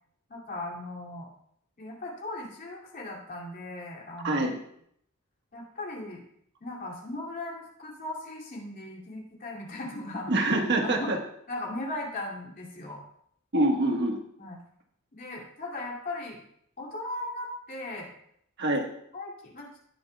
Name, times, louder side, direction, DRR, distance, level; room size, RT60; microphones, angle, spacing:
voice 1, 0.3-1.3 1.8-4.4 5.5-6.2 6.6-10.3 10.8-11.1 11.5-13.0 14.4-14.6 15.1-16.4 16.8-18.1 19.1-19.7, left 2 dB, 40° left, -2 dB, 2.7 m, -37 dB
voice 2, 4.2-4.6 10.3-11.2 13.5-14.2 18.6-18.9, right 1 dB, 55° right, 2 dB, 1.4 m, -25 dB
18.0 x 7.3 x 2.3 m, 0.68 s
head